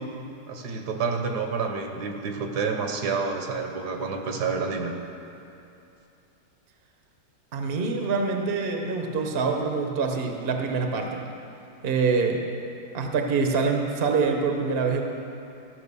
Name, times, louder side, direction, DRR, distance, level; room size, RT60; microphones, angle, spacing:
voice 1, 0.5-4.9, right 5 dB, 65° right, 4 dB, 1.4 m, -29 dB
voice 2, 7.5-11.2 11.8-12.4 12.9-15.0, right 4 dB, 45° right, 3 dB, 0.9 m, -25 dB
14.0 x 5.8 x 6.9 m, 2.7 s
omnidirectional pair, 1.9 m